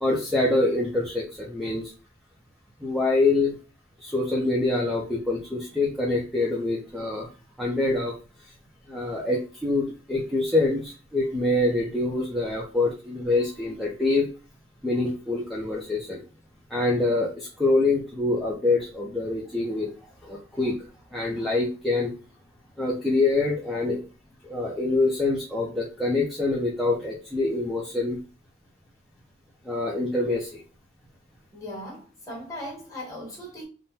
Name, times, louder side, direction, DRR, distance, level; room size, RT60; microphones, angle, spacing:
voice 1, 0.0-1.9 2.8-3.5 4.0-7.3 7.6-8.1 8.9-14.3 14.8-16.2 16.7-19.9 20.2-22.1 22.8-24.0 24.4-28.2 29.6-30.6, left 2 dB, ahead, -5 dB, 0.7 m, -25 dB
voice 2, 31.5-33.6, equal, 15° left, -3 dB, 1.7 m, -38 dB
3.8 x 2.2 x 4.1 m, 0.35 s
head